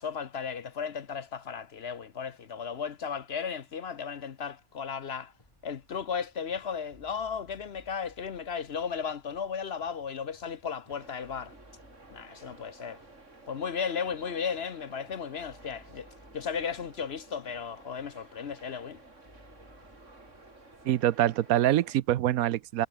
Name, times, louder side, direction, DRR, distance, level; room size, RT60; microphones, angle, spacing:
voice 1, 0.0-5.3 5.6-11.5 12.1-13.0 13.5-16.1 16.3-19.0, left 6 dB, 50° left, 1.0 m, -35 dB
sound 1, 5.4-21.0, left 1 dB, 20° left, 6.0 m, -61 dB
sound 2, 10.9-22.0, right 2 dB, 55° right, 4.6 m, -53 dB
voice 2, 20.8-22.9, right 13 dB, 80° right, 1.1 m, -25 dB
omnidirectional pair, 1.5 m